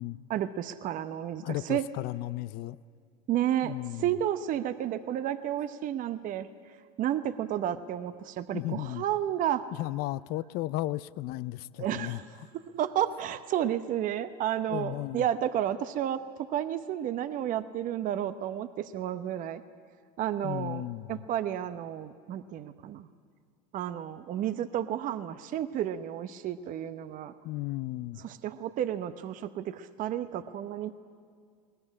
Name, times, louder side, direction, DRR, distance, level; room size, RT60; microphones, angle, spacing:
voice 1, 0.3-1.8 3.3-6.5 7.0-9.6 11.8-12.3 12.5-16.2 16.5-19.6 20.2-23.1 23.7-27.3 28.2-30.9, right 11 dB, 40° right, 0.9 m, -31 dB
voice 2, 1.4-2.8 3.6-4.1 8.5-9.0 9.8-12.2 14.7-15.3 20.4-21.2 27.4-28.2, left 17 dB, 50° left, 0.5 m, -34 dB
21.0 x 19.5 x 9.9 m
hypercardioid pair, 100°, 20 cm